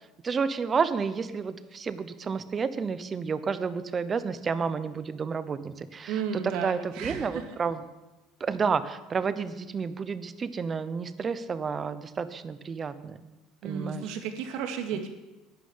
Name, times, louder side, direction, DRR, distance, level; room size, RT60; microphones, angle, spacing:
voice 1, 0.2-7.8 8.4-13.2 13.6-14.1, right 5 dB, 25° right, 13 dB, 0.8 m, -30 dB
voice 2, 6.1-7.4 13.6-15.1, right 7 dB, 70° right, 6 dB, 2.2 m, -33 dB
11.0 x 10.0 x 9.8 m, 1.1 s
cardioid pair, 150°, 0 cm